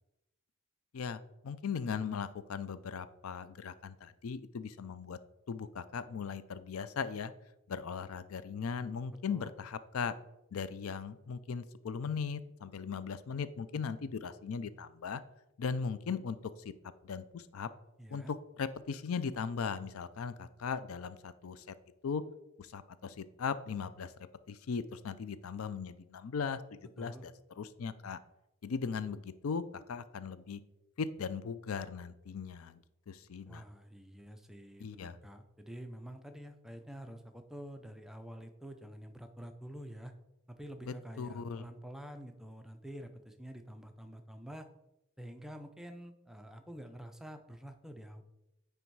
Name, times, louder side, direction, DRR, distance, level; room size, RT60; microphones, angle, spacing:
voice 1, 0.9-5.2 5.5-7.3 7.7-10.1 10.5-15.2 15.6-16.7 17.0-17.7 18.1-21.7 22.0-22.2 22.6-24.1 24.5-28.2 28.6-30.6 31.0-33.6 34.8-35.2 40.9-41.7, left 6 dB, 80° left, 14 dB, 0.4 m, -38 dB
voice 2, 18.0-18.3 27.0-27.3 33.5-40.1 40.5-44.7 45.2-48.2, equal, ahead, 6 dB, 0.4 m, -48 dB
9.4 x 3.4 x 4.6 m, 0.92 s
head